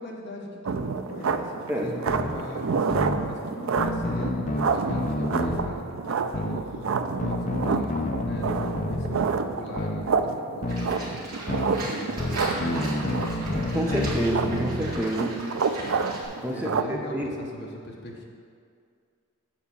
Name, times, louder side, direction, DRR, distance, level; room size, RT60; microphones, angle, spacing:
voice 1, 0.0-11.2 11.7-13.2 16.5-18.2, left 1 dB, 50° left, -1 dB, 1.2 m, -40 dB
sound 1, 0.7-16.8, right 5 dB, 70° right, 0.4 m, -29 dB
sound 2, 2.1-2.3 2.9-3.2 3.8-5.7 6.3-6.6 7.2-9.2 9.8-10.0 10.6-10.9 11.5-11.7 12.2-15.0, left 1 dB, 35° left, 0.5 m, -29 dB
Livestock farm animals working animals, 10.7-16.3, right 2 dB, 45° right, 1.9 m, -37 dB
voice 2, 13.7-15.4 16.4-16.6 17.1-17.2, equal, 10° right, -1 dB, 0.8 m, -27 dB
7.5 x 4.7 x 7.1 m, 2.3 s
head